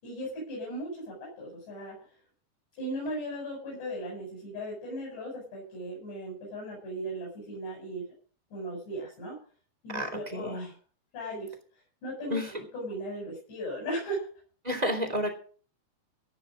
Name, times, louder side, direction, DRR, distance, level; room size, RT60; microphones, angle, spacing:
voice 1, 0.0-2.0 2.8-8.1 8.5-9.4 9.8-10.7 11.1-11.5 12.0-12.4 12.7-14.3, right 1 dB, 70° left, -5 dB, 9.8 m, -37 dB
voice 2, 9.9-10.7 12.3-12.5 14.6-15.3, equal, 10° right, 4 dB, 2.5 m, -30 dB
17.5 x 10.0 x 5.2 m, 0.43 s
omnidirectional pair, 5.0 m